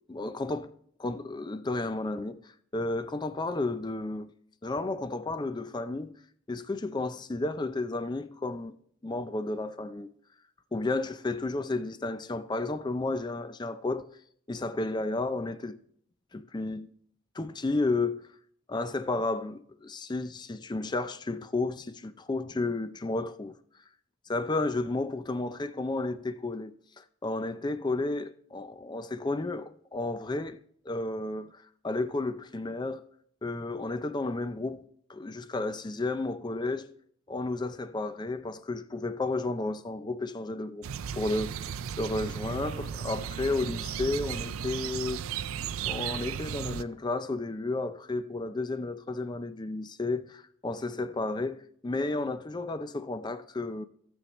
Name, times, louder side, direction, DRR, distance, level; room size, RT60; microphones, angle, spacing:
voice 1, 0.1-0.7 1.0-4.3 4.6-6.2 6.5-8.8 9.0-10.1 10.7-14.1 14.5-15.8 16.3-16.9 17.3-18.2 18.7-23.6 24.3-30.6 30.9-33.1 33.4-34.8 35.1-36.9 37.3-40.9 41.1-45.2 45.9-53.8, left 2 dB, 20° left, 0.4 m, -32 dB
sound 1, 40.8-46.8, right 8 dB, 85° right, 0.4 m, -35 dB
16.0 x 7.2 x 3.1 m
head